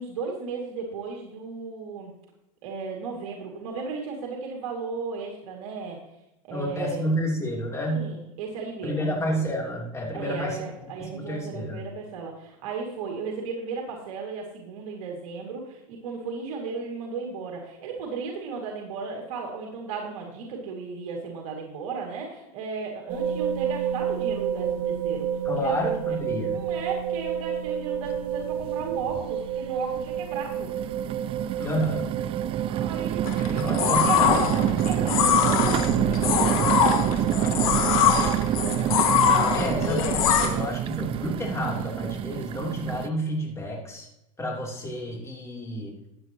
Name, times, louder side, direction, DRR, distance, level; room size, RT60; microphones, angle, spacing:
voice 1, 0.0-2.1 2.6-6.0 6.5-7.0 7.9-9.2 10.1-25.8 26.4-30.7 32.7-37.1 38.2-38.9, right 5 dB, 75° right, 0 dB, 2.5 m, -35 dB
voice 2, 6.5-8.1 8.8-10.7 11.0-11.8 25.4-26.6 31.6-32.0 33.5-34.6 39.5-44.1 44.4-45.9, equal, 15° left, -1 dB, 3.3 m, -30 dB
sound 1, 23.1-40.0, right 8 dB, 50° right, 2.5 m, -32 dB
sound 2, 28.1-28.2 28.6-29.3 29.9-43.1, right 12 dB, 30° right, 0.4 m, -27 dB
sound 3, 33.3-40.5, left 8 dB, 85° left, 1.9 m, -23 dB
15.0 x 9.5 x 3.0 m, 0.87 s
supercardioid pair, 120°, 18 cm